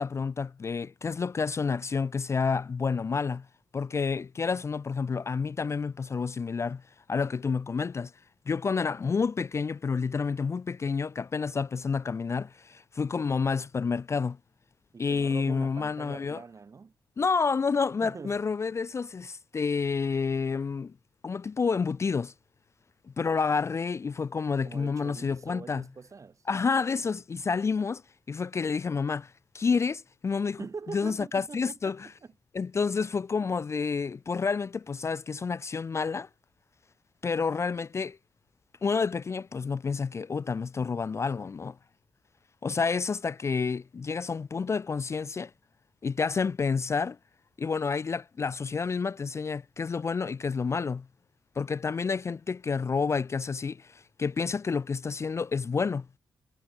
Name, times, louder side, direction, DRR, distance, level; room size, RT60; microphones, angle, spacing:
voice 1, 0.0-3.5 3.7-6.8 7.1-8.1 8.5-14.4 15.0-16.4 17.2-20.9 21.2-22.3 23.1-25.8 26.5-28.0 28.3-30.6 30.9-32.1 32.5-36.3 37.2-38.2 38.8-41.8 42.6-45.5 46.0-47.2 47.6-51.1 51.6-56.1, left 5 dB, 35° left, 0.4 m, -29 dB
voice 2, 14.9-16.9 18.0-18.4 24.6-26.4 30.6-32.0 32.2-32.3, right 5 dB, 45° right, 2.7 m, -43 dB
cardioid pair, 95°, 8 cm